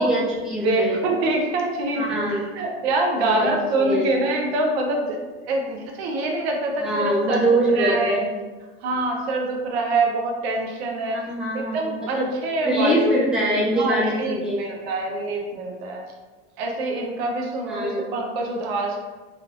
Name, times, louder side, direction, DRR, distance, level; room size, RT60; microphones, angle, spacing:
voice 1, 0.0-1.0 1.9-2.4 3.2-3.5 3.8-4.1 6.8-8.3 11.3-12.2 12.6-14.6 17.7-18.0, right 1 dB, ahead, -8 dB, 1.0 m, -23 dB
voice 2, 0.6-7.5 7.7-8.2 8.8-11.2 11.5-13.1 13.7-16.0 16.6-19.0, right 2 dB, 75° right, 1 dB, 0.7 m, -25 dB
3.2 x 2.9 x 2.4 m, 1.3 s
supercardioid pair, 120°, 31 cm